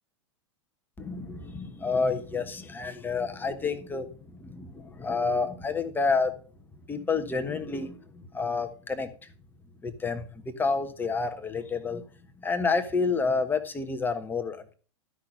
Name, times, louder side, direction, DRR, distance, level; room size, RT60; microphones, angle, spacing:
voice 1, 1.0-4.1 4.4-6.3 6.9-9.1 9.8-12.0 12.4-14.7, left 4 dB, 15° left, 7 dB, 1.2 m, -29 dB
13.0 x 6.0 x 5.0 m, 0.38 s
figure-of-eight pair, 95°, 15 cm